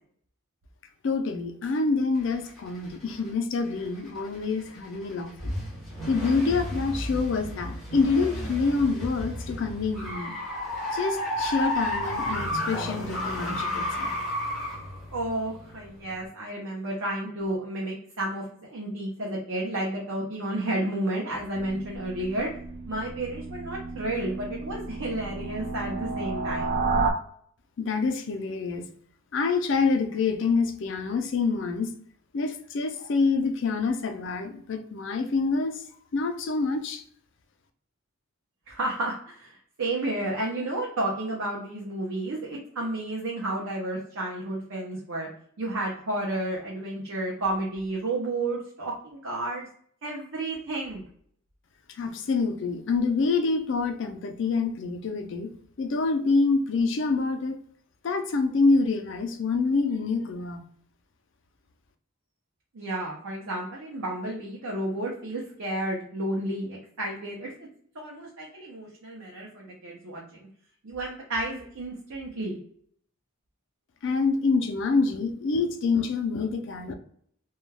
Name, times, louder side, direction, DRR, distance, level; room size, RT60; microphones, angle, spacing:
voice 1, 1.0-5.5 6.1-10.4 10.9-14.2 27.8-28.9 29.3-31.9 32.3-35.8 36.1-37.0 51.9-55.5 55.8-57.6 58.0-60.6 74.0-76.9, left 4 dB, 55° left, 7 dB, 0.4 m, -26 dB
sound 1, 2.1-3.3 3.7-16.3, left 1 dB, ahead, 0.9 m, -33 dB
voice 2, 15.1-22.5 22.9-26.8 38.7-45.3 45.6-49.7 50.0-51.0 62.7-67.5 67.9-70.5 70.8-72.6, right 1 dB, 80° right, -3 dB, 0.6 m, -31 dB
sound 2, 21.5-27.1, right 3 dB, 45° right, 0.3 m, -32 dB
2.2 x 2.2 x 3.2 m, 0.63 s
head